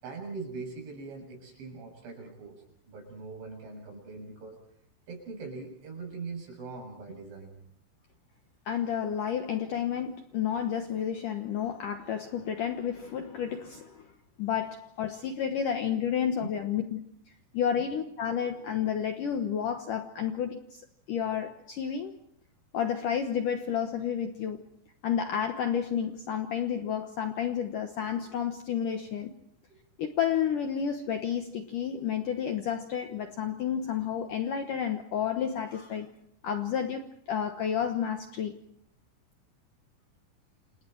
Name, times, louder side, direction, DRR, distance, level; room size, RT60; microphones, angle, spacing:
voice 1, 0.0-4.6 5.1-7.6 16.4-16.7 29.7-29.8, right 4 dB, 65° right, 9.6 m, -42 dB
voice 2, 8.7-14.1 14.4-17.0 17.5-20.8 21.1-22.1 22.7-24.6 25.0-29.3 30.0-36.1 36.4-38.6, left 8 dB, 85° left, 1.8 m, -31 dB
29.0 x 28.5 x 4.6 m
omnidirectional pair, 5.7 m